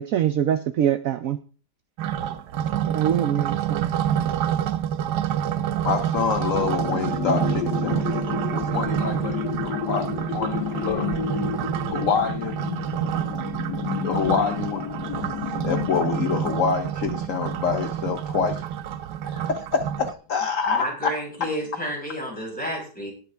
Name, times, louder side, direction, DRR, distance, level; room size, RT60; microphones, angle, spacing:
voice 1, 0.0-1.4 2.9-3.9, right 10 dB, 65° right, 11 dB, 0.9 m, -24 dB
sound 1, 2.0-20.1, right 10 dB, 85° right, 1.3 m, -28 dB
voice 2, 5.8-11.1 11.9-12.5 14.0-14.8 15.6-18.6 19.2-21.1, left 6 dB, 55° left, 7 dB, 1.2 m, -26 dB
sound 2, 6.5-16.6, left 10 dB, 90° left, 1.3 m, -31 dB
voice 3, 20.7-23.1, equal, 5° left, -3 dB, 5.6 m, -30 dB
19.0 x 6.9 x 3.5 m, 0.39 s
omnidirectional pair, 1.8 m